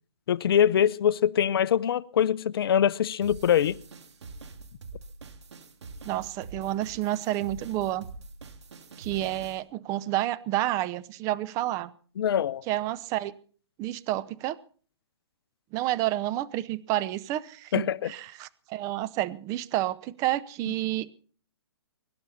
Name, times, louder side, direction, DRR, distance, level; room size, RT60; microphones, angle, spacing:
voice 1, 0.3-3.8 12.2-12.6 17.7-18.1, left 9 dB, 55° left, 0.7 m, -23 dB
sound 1, 3.2-9.6, right 3 dB, 75° right, 3.0 m, -45 dB
voice 2, 6.0-8.0 9.0-11.9 12.7-13.3 13.8-14.6 15.7-21.1, right 15 dB, 20° right, 0.7 m, -30 dB
24.0 x 11.5 x 4.2 m
hypercardioid pair, 145°, 15 cm